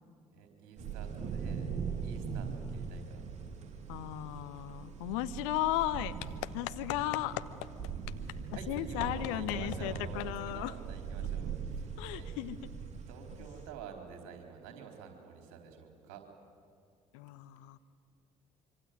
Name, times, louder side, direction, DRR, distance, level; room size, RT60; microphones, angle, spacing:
voice 1, 0.3-1.7 2.0-3.2 8.1-12.4 13.1-16.2, right 6 dB, 60° right, 4 dB, 4.0 m, -49 dB
sound 1, 0.8-13.7, right 6 dB, 40° right, 3.8 m, -40 dB
voice 2, 3.9-6.1 6.5-7.4 8.7-10.7 12.0-12.6 17.1-17.8, left 14 dB, 65° left, 11 dB, 1.0 m, -35 dB
25.0 x 24.5 x 9.7 m, 2.3 s
figure-of-eight pair, 50°, 17 cm